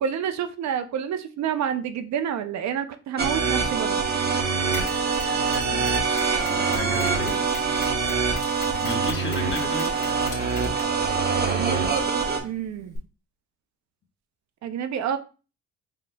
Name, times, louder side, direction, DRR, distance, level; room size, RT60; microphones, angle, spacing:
voice 1, 0.0-4.0 11.4-12.0 12.4-13.0 14.6-15.2, right 8 dB, 65° right, 9 dB, 0.5 m, -28 dB
sound 1, 3.2-12.4, right 5 dB, 35° right, 0.9 m, -24 dB
Mechanisms, 4.7-13.0, left 3 dB, 75° left, 1.9 m, -42 dB
voice 2, 5.7-7.7 8.8-9.9, left 3 dB, 40° left, 3 dB, 1.1 m, -34 dB
4.2 x 3.8 x 2.2 m, 0.34 s
cardioid pair, 90°, 30 cm